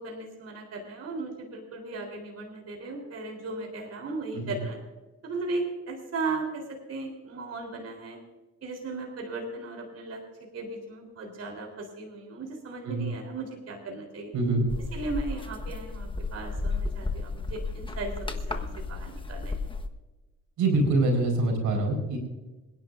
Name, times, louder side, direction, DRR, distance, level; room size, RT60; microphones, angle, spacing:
voice 1, 0.0-4.8 5.2-8.2 8.6-10.2 10.5-14.3 14.9-19.5, right 3 dB, 55° right, 1 dB, 3.7 m, -36 dB
sound 1, 14.7-19.9, left 3 dB, 15° left, 1.3 m, -33 dB
voice 2, 20.6-22.2, right 2 dB, 85° right, 3 dB, 4.6 m, -25 dB
27.0 x 10.5 x 2.6 m, 1.2 s
cardioid pair, 90°, 30 cm